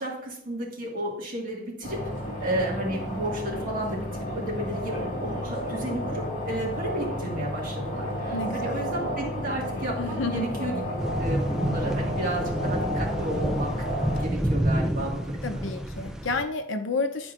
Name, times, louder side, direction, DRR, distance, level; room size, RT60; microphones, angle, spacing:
voice 1, 0.0-2.0 2.4-10.8 11.2-13.9 14.2-15.7, right 1 dB, 45° right, -2 dB, 1.8 m, -33 dB
sound 1, 1.8-14.2, equal, 40° left, 1.7 m, -32 dB
voice 2, 8.3-8.8 10.0-10.6 15.4-17.3, left 3 dB, 75° left, 7 dB, 0.7 m, -30 dB
sound 2, 11.0-16.4, right 1 dB, 5° right, 0.3 m, -28 dB
9.7 x 4.4 x 2.5 m, 0.69 s
head